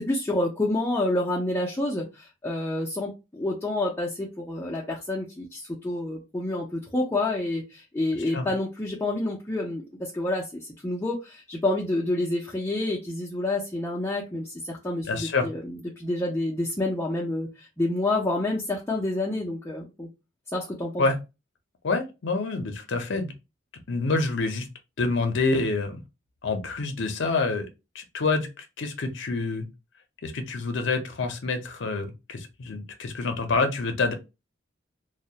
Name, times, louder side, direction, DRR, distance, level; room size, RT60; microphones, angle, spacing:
voice 1, 0.0-20.1 20.5-21.0, left 2 dB, 10° left, 0.4 m, -28 dB
voice 2, 15.0-15.5 21.0-21.2 21.8-23.3 23.9-24.7 25.0-26.0 26.4-27.7 27.9-29.7 30.2-34.1, left 3 dB, 60° left, 0.5 m, -27 dB
2.3 x 2.0 x 2.7 m
head